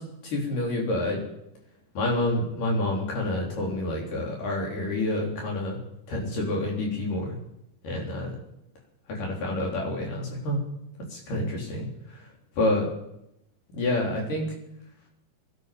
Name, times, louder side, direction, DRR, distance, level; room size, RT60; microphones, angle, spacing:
voice 1, 0.2-1.2 2.0-5.8 6.1-7.4 7.8-8.4 9.1-10.6 11.1-12.9 13.7-14.5, left 1 dB, 65° left, -1 dB, 5.2 m, -28 dB
21.0 x 12.0 x 5.3 m, 0.81 s
omnidirectional pair, 4.0 m